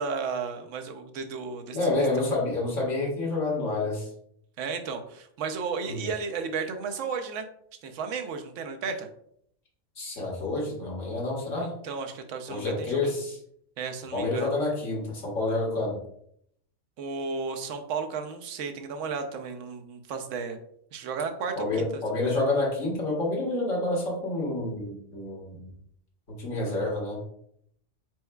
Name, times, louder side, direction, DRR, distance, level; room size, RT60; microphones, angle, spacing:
voice 1, 0.0-1.8 4.6-7.5 7.8-9.1 11.6-13.1 13.8-14.5 17.0-20.6 20.9-22.2, right 5 dB, 85° right, 6 dB, 1.0 m, -33 dB
voice 2, 1.7-4.1 5.9-6.0 10.0-11.7 12.5-13.4 14.1-16.0 21.5-25.7 26.3-27.2, left 2 dB, 90° left, -2 dB, 1.8 m, -28 dB
4.6 x 4.4 x 2.2 m, 0.70 s
omnidirectional pair, 1.2 m